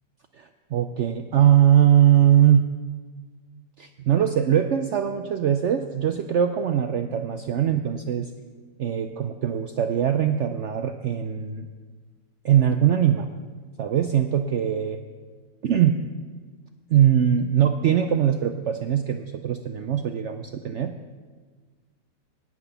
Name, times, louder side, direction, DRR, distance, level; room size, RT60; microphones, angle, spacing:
voice 1, 0.4-2.6 3.8-8.3 8.8-11.7 12.4-13.3 13.8-15.0 15.6-15.9 16.9-20.9, right 10 dB, 70° right, 8 dB, 0.6 m, -21 dB
17.5 x 6.0 x 6.8 m, 1.5 s
omnidirectional pair, 1.8 m